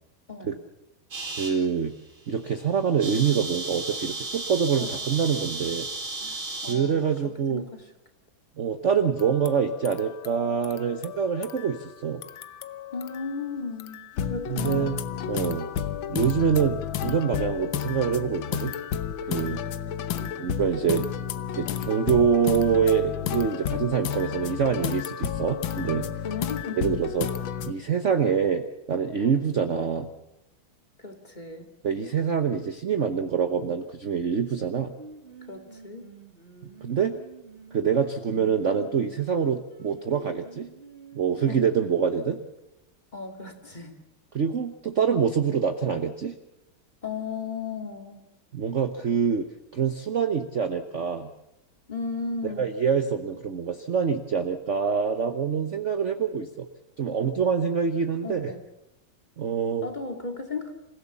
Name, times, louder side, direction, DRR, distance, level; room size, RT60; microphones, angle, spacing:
sound 1, 1.1-1.6 2.1-2.3 2.6-2.7 2.8-6.8, right 3 dB, 80° right, 5.3 m, -34 dB
voice 1, 1.4-1.9 2.3-5.9 6.7-7.6 8.6-12.2 14.5-15.0 15.3-15.7 16.1-18.7 19.2-19.6 20.4-21.1 21.5-26.1 26.8-27.3 27.6-30.1 31.8-34.9 36.8-37.2 37.7-40.7 41.1-42.4 44.3-46.3 48.5-49.5 49.7-51.3 52.4-56.7 57.0-58.5 59.4-59.9, right 7 dB, 45° right, 7 dB, 1.1 m, -25 dB
voice 2, 6.2-7.1 7.5-7.8 12.9-15.0 19.3-20.4 26.2-27.0 29.2-29.4 31.0-31.7 35.5-36.1 41.5-41.7 43.1-44.0 47.0-48.2 51.9-52.7 58.2-58.6 59.8-60.7, left 4 dB, 20° left, 4 dB, 2.3 m, -36 dB
sound 2, 9.2-11.9 12.2-13.5 13.8-27.7, left 9 dB, 75° left, 1.7 m, -32 dB
Singing, 35.0-42.3, right 3 dB, 30° right, 2.2 m, -48 dB
26.5 x 16.5 x 7.1 m, 0.85 s
omnidirectional pair, 2.2 m